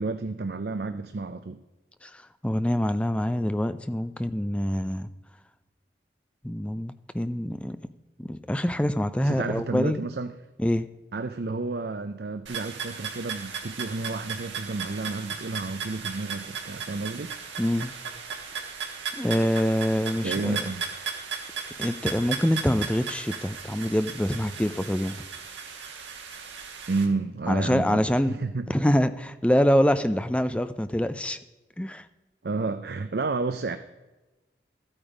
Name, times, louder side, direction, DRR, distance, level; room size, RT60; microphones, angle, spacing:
voice 1, 0.0-1.6 9.2-10.3 11.1-17.3 20.2-20.9 26.9-28.7 32.4-33.8, right 3 dB, 60° right, 9 dB, 0.5 m, -31 dB
voice 2, 2.0-5.1 6.4-7.8 8.2-10.0 10.6-10.9 17.6-17.9 19.1-20.6 21.8-25.2 27.5-28.3 28.7-31.4 31.8-32.1, equal, 5° left, 12 dB, 0.4 m, -25 dB
sound 1, 12.5-27.1, right 6 dB, 90° right, 1.8 m, -36 dB
13.0 x 8.9 x 5.0 m, 1.1 s
head